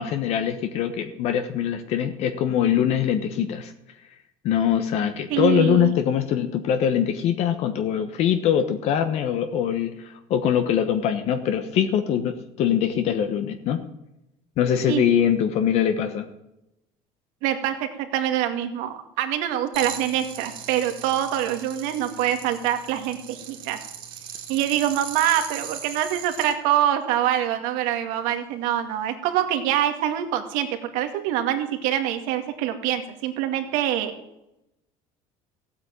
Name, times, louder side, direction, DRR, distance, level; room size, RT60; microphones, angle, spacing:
voice 1, 0.0-3.7 4.4-13.8 14.6-16.3, left 9 dB, 50° left, 8 dB, 1.2 m, -23 dB
voice 2, 5.3-5.9 14.9-15.0 17.4-23.8 24.5-34.1, right 11 dB, 75° right, 6 dB, 2.2 m, -25 dB
sound 1, 19.7-26.5, right 8 dB, 40° right, 2.7 m, -38 dB
16.0 x 8.7 x 8.8 m, 0.89 s
cardioid pair, 160°, 14 cm